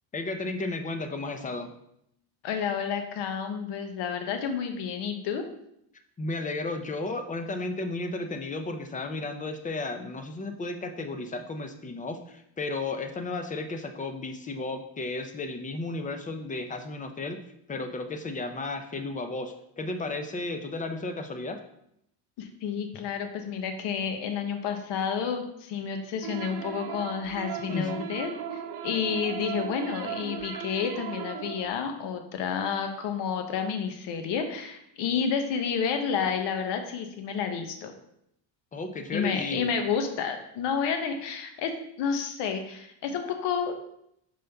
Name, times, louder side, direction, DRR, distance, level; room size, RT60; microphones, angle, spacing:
voice 1, 0.1-1.7 6.2-17.4 17.7-21.6 27.7-28.0 38.7-39.7, left 2 dB, 15° left, 7 dB, 0.5 m, -33 dB
voice 2, 2.4-5.4 22.4-37.9 39.1-41.7 42.0-43.7, left 6 dB, 65° left, 6 dB, 0.9 m, -30 dB
sound 1, 26.2-31.7, right 8 dB, 60° right, 1.0 m, -37 dB
5.4 x 5.2 x 3.4 m, 0.74 s
cardioid pair, 130°, 46 cm